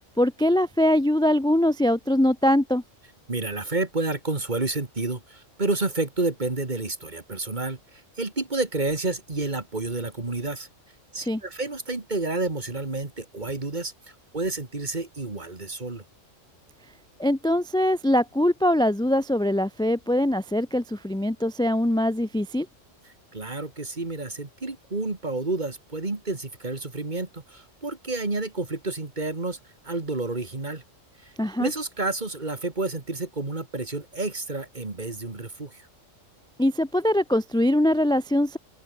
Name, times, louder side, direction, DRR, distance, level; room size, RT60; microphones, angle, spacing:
voice 1, 0.2-2.8 11.2-11.4 17.2-22.7 31.4-31.7 36.6-38.6, left 1 dB, 5° left, 0.5 m, -22 dB
voice 2, 3.3-10.7 11.1-13.9 14.3-16.0 23.3-29.6 29.8-30.8 31.2-31.3 31.6-35.8, right 2 dB, 35° right, 2.5 m, -30 dB
open air
omnidirectional pair, 1.3 m